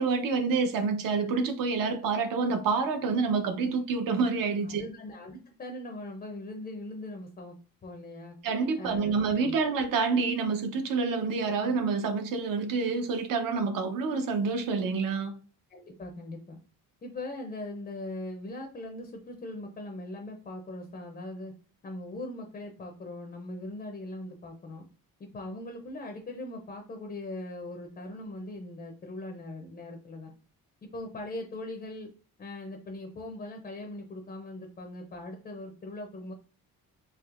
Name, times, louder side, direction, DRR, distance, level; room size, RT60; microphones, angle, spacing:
voice 1, 0.0-4.8 8.4-15.3, right 4 dB, 65° right, 0.8 m, -28 dB
voice 2, 4.6-7.6 7.8-8.4 8.7-9.6 15.7-16.6 17.0-21.5 21.8-24.9 25.2-30.3 30.9-32.1 32.4-36.3, left 1 dB, 25° left, 0.5 m, -40 dB
4.6 x 2.8 x 2.4 m
cardioid pair, 165°, 36 cm